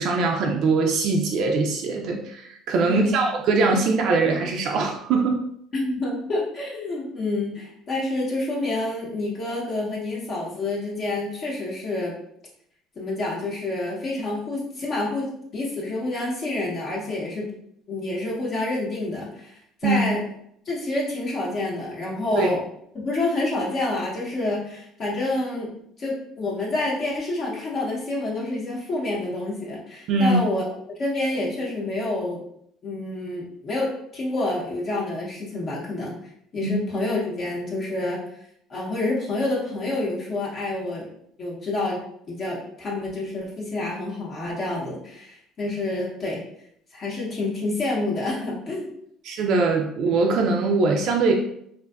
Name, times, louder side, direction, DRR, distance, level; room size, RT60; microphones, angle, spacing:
voice 1, 0.0-5.4 19.8-20.0 22.4-22.5 30.1-30.4 36.6-36.7 49.3-51.3, right 3 dB, 65° right, 2 dB, 0.3 m, -22 dB
voice 2, 2.8-3.2 5.7-12.1 13.0-17.5 17.9-20.3 20.7-22.6 22.9-30.6 31.0-32.4 32.8-36.1 36.5-38.2 38.7-42.0 42.3-46.4 46.9-48.9, left 2 dB, 45° left, -4 dB, 0.7 m, -28 dB
2.5 x 2.2 x 2.3 m, 0.70 s
supercardioid pair, 95°, 0 cm